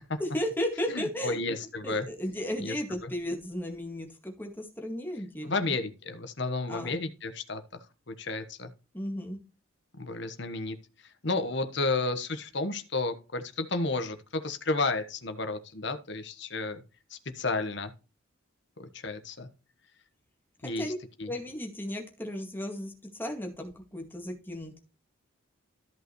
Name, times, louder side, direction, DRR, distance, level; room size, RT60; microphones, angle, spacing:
voice 1, 0.2-1.4 1.8-5.7 6.7-7.0 8.9-9.4 20.6-21.0 21.3-24.8, equal, 10° left, 2.0 m, -35 dB
voice 2, 0.9-2.1 2.6-2.7 3.0-3.1 5.4-7.6 8.1-8.7 10.0-10.8 11.2-16.8 17.1-17.9 18.8-19.5 20.6-20.9 21.2-21.3, left 3 dB, 55° left, 1.2 m, -32 dB
14.0 x 5.6 x 3.1 m
head